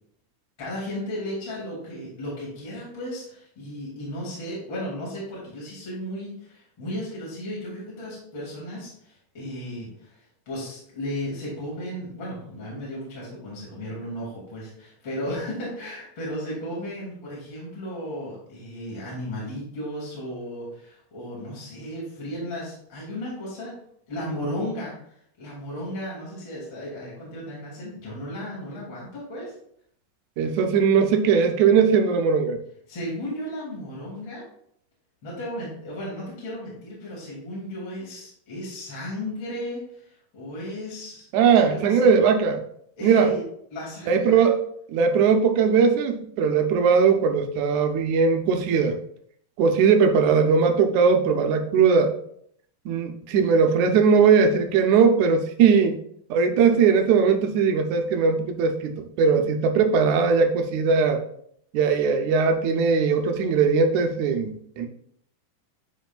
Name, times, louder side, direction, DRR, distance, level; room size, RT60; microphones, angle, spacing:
voice 1, 0.6-10.2 10.5-23.7 24.1-25.0 25.4-29.5 32.9-34.5 35.2-41.2 41.5-42.1 43.0-43.4 43.7-44.4, equal, 35° left, -6 dB, 3.1 m, -34 dB
voice 2, 30.4-32.6 41.3-42.6 43.0-43.3 44.1-44.6 44.9-49.0 49.6-52.1 52.9-56.0 56.3-61.2 61.7-64.9, right 5 dB, 75° right, 4 dB, 1.8 m, -19 dB
11.5 x 4.6 x 2.4 m, 0.68 s
omnidirectional pair, 4.0 m